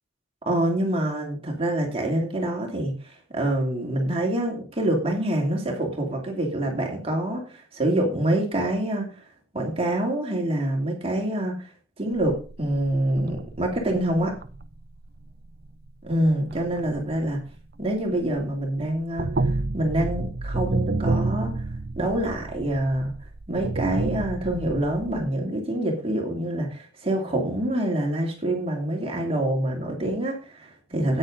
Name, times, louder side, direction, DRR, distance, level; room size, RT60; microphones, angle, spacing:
voice 1, 0.5-9.1 9.5-11.7 12.0-14.3 16.0-17.4 17.8-21.5 22.0-23.1 23.5-31.2, right 1 dB, 25° right, 0 dB, 2.6 m, -26 dB
sound 1, 12.1-18.5 18.8-25.3, right 2 dB, 45° right, 0.6 m, -30 dB
13.0 x 9.3 x 3.8 m, 0.37 s
head